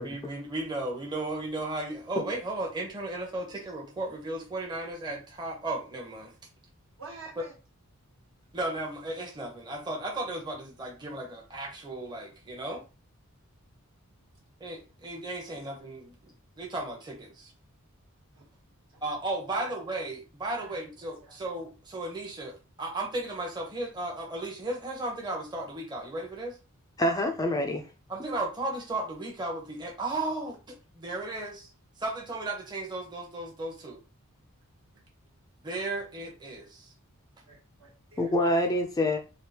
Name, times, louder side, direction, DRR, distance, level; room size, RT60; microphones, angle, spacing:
voice 1, 0.0-6.3 7.4-7.5 8.5-12.8 14.6-17.5 19.0-26.6 28.1-31.7 32.0-34.0 35.6-36.9, right 2 dB, 20° right, 0.8 m, -35 dB
voice 2, 7.0-7.5 18.3-18.4 18.9-19.0 19.5-19.8 20.6-20.8 21.2-21.4 37.5-38.5, right 4 dB, 65° right, 1.2 m, -48 dB
voice 3, 27.0-27.9 38.2-39.2, left 1 dB, 15° left, 0.3 m, -26 dB
3.5 x 2.3 x 2.8 m
head